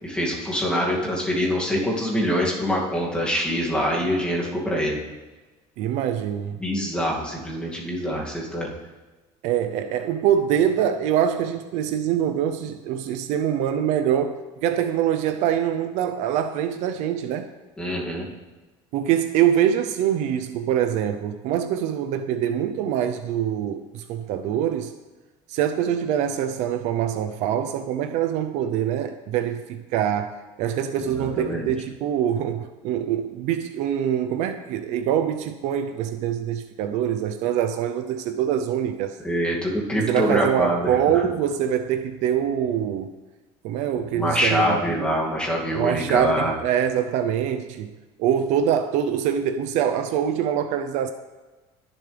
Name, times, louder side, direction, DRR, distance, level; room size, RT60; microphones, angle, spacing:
voice 1, 0.0-5.0 6.6-8.7 17.8-18.3 31.0-31.7 39.2-41.2 44.0-46.5, equal, 5° left, -3 dB, 2.4 m, -25 dB
voice 2, 5.8-6.6 9.4-17.5 18.9-24.9 25.5-39.1 40.0-43.1 43.6-45.1 45.7-47.9 48.2-51.1, right 9 dB, 60° right, 8 dB, 0.7 m, -24 dB
20.5 x 7.2 x 3.4 m, 1.2 s
cardioid pair, 145°, 13 cm